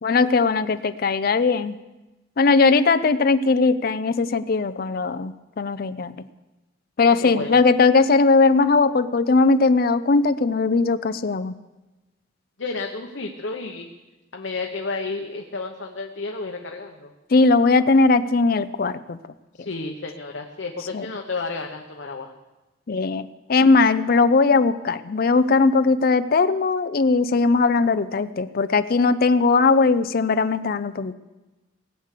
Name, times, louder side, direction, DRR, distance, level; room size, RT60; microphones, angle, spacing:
voice 1, 0.0-1.8 2.4-6.1 7.0-11.5 17.3-19.2 20.9-21.1 22.9-31.1, left 4 dB, 50° left, 11 dB, 0.5 m, -19 dB
voice 2, 7.2-7.5 12.6-13.9 14.3-17.1 19.5-22.3, left 3 dB, 80° left, 2 dB, 1.1 m, -31 dB
18.5 x 8.2 x 6.6 m, 1.1 s
head